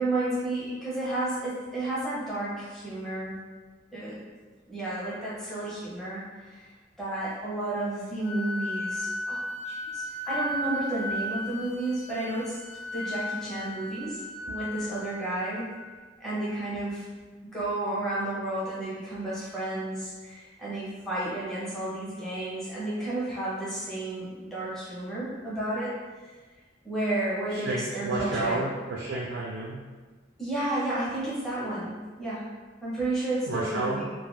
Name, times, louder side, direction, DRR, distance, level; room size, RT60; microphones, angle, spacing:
voice 1, 0.0-3.4 3.9-4.2 4.7-6.7 7.0-12.6 12.9-15.6 16.2-17.1 17.5-25.9 26.2-26.3 26.8-28.6 30.4-32.5 32.8-34.0, right 2 dB, ahead, -9 dB, 0.6 m, -32 dB
Wind instrument woodwind instrument, 8.2-16.0, left 1 dB, 90° left, 1.0 m, -35 dB
voice 2, 27.5-29.8 33.5-34.0, right 2 dB, 85° right, -3 dB, 0.4 m, -31 dB
2.3 x 2.2 x 3.1 m, 1.3 s
head